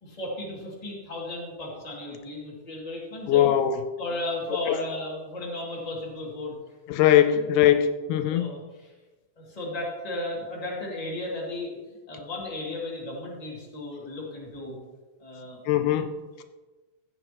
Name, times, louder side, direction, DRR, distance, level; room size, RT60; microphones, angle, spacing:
voice 1, 0.0-3.5 4.0-6.6 8.3-8.9 9.4-14.8 15.2-15.6 15.9-16.1, left 2 dB, 15° left, -4 dB, 2.0 m, -35 dB
voice 2, 3.3-3.8 4.7-4.8 6.9-8.5 15.7-16.1, left 11 dB, 85° left, 9 dB, 2.1 m, -21 dB
14.5 x 7.9 x 3.0 m, 1.2 s
omnidirectional pair, 3.6 m